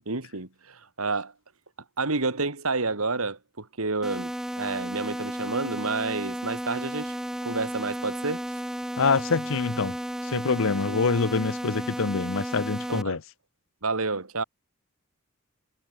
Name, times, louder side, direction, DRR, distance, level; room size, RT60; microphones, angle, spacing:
voice 1, 0.0-1.3 2.0-7.2 7.4-8.5 10.9-11.0 12.9-13.2 13.8-14.4, right 3 dB, 75° right, 2.4 m, -30 dB
sound 1, 4.0-13.0, equal, ahead, 0.5 m, -33 dB
voice 2, 9.0-10.0 10.2-13.2, left 4 dB, 65° left, 0.8 m, -25 dB
head